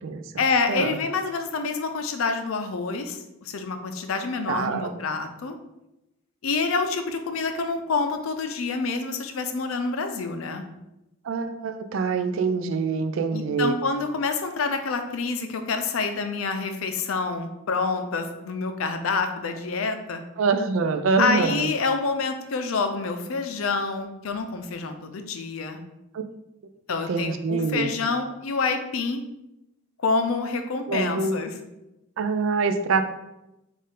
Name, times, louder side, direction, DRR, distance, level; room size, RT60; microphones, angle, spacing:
voice 1, 0.4-5.6 6.4-10.6 13.3-20.2 21.2-25.8 26.9-29.2 30.0-31.5, left 4 dB, 80° left, 7 dB, 0.5 m, -27 dB
voice 2, 4.5-4.9 11.2-13.8 20.4-21.7 26.1-26.2 27.1-27.9 30.9-31.4 32.2-33.1, right 4 dB, 70° right, 8 dB, 0.3 m, -25 dB
4.3 x 2.5 x 3.7 m, 0.92 s
head